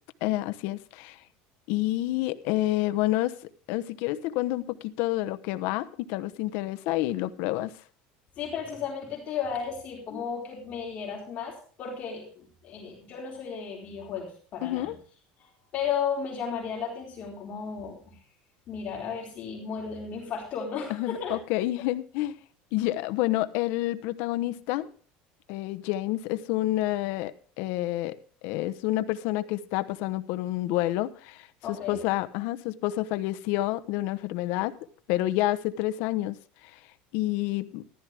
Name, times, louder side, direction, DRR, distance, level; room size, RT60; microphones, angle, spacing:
voice 1, 0.2-1.2 1.7-3.3 3.7-7.7 10.1-10.2 14.6-15.0 20.9-22.3 22.7-24.9 25.5-28.2 28.4-34.7 35.1-36.4 37.1-37.8, left 16 dB, 65° left, 1.0 m, -29 dB
voice 2, 8.4-14.9 15.4-18.1 18.7-21.4 31.6-32.0, left 6 dB, 35° left, 4.3 m, -34 dB
14.5 x 12.5 x 3.5 m
cardioid pair, 160°, 4 cm